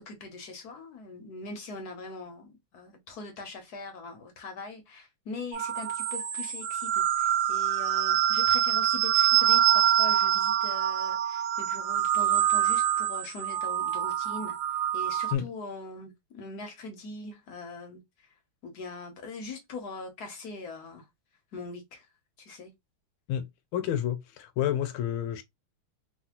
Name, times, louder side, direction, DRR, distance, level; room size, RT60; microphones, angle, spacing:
voice 1, 0.0-14.5 14.9-18.3 18.6-21.0 21.5-22.1 22.4-22.7, left 3 dB, 65° left, 1.0 m, -42 dB
sound 1, 5.5-15.3, right 11 dB, 70° right, 1.3 m, -25 dB
voice 2, 23.7-25.4, left 10 dB, 80° left, 1.5 m, -29 dB
3.9 x 2.3 x 2.8 m
omnidirectional pair, 2.4 m